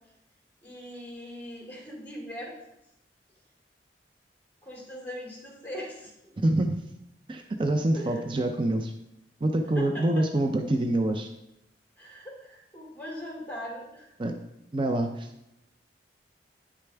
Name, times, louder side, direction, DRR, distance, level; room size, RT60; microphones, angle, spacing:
voice 1, 0.6-2.5 4.6-6.1 7.9-8.2 9.7-10.2 12.0-14.1, equal, 10° left, -3 dB, 2.5 m, -40 dB
voice 2, 6.4-6.7 7.3-8.9 9.4-11.3 14.2-14.4 14.7-15.3, right 1 dB, 30° right, 5 dB, 0.5 m, -26 dB
9.3 x 6.6 x 3.4 m, 0.86 s
head